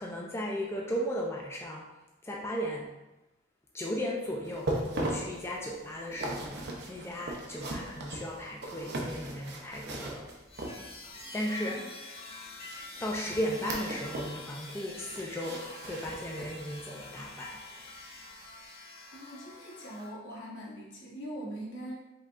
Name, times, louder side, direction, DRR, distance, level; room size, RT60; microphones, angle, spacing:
voice 1, 0.0-1.8 2.2-2.9 3.7-6.6 6.9-10.2 11.3-11.8 13.0-17.9, equal, 15° left, -3 dB, 0.4 m, -36 dB
sound 1, 4.5-11.2 12.6-14.4 14.7-16.7 17.1-17.2 17.8-17.9, right 1 dB, 60° right, 0.7 m, -38 dB
sound 2, 10.5-20.1, left 2 dB, 30° left, 0.8 m, -46 dB
voice 2, 19.1-21.9, right 1 dB, 70° left, -4 dB, 1.3 m, -42 dB
5.1 x 3.7 x 2.5 m, 1.0 s
head